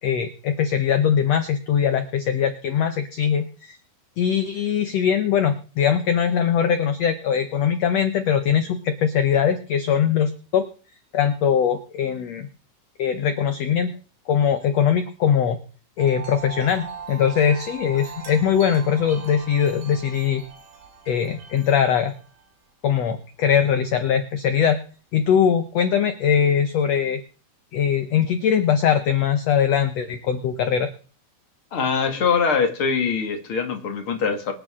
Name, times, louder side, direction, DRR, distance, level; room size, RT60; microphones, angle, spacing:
voice 1, 0.0-3.8 4.2-10.6 11.1-12.5 13.0-13.9 14.3-15.6 16.0-20.4 21.1-22.1 22.8-24.8 25.1-27.2 27.7-30.9, left 8 dB, 70° left, 9 dB, 1.6 m, -21 dB
Wind chime, 16.0-22.5, right 6 dB, 90° right, 4.6 m, -40 dB
voice 2, 31.7-34.5, left 5 dB, 40° left, 5 dB, 2.5 m, -23 dB
25.0 x 9.0 x 3.7 m, 0.39 s
omnidirectional pair, 4.2 m